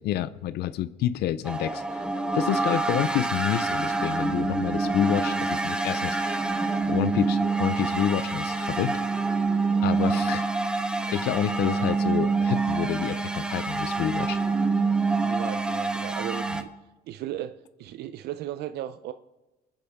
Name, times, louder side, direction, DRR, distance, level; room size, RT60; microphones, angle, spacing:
voice 1, 0.0-2.0 2.3-6.4 6.9-9.0 9.8-10.4 11.1-14.4, left 12 dB, 75° left, 14 dB, 0.6 m, -28 dB
sound 1, 1.4-16.6, right 3 dB, 5° right, 1.2 m, -26 dB
voice 2, 15.2-16.7 17.1-19.1, right 12 dB, 75° right, 11 dB, 0.6 m, -36 dB
23.5 x 10.5 x 3.6 m, 1.1 s
cardioid pair, 110°, 17 cm